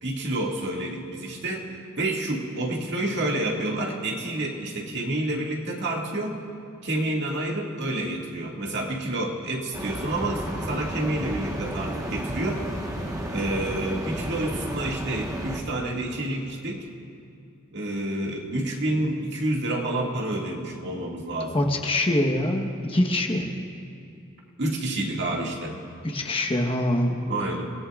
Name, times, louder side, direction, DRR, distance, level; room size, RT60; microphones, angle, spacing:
voice 1, 0.0-6.4 6.8-12.6 13.3-16.9 17.7-21.7 24.6-25.8 27.3-27.7, right 1 dB, 55° right, -1 dB, 2.1 m, -29 dB
sound 1, 9.7-15.6, equal, 15° right, 1.3 m, -32 dB
voice 2, 21.5-23.5 26.0-27.2, left 1 dB, 25° left, 2 dB, 1.2 m, -24 dB
29.5 x 18.0 x 2.5 m, 2.5 s
head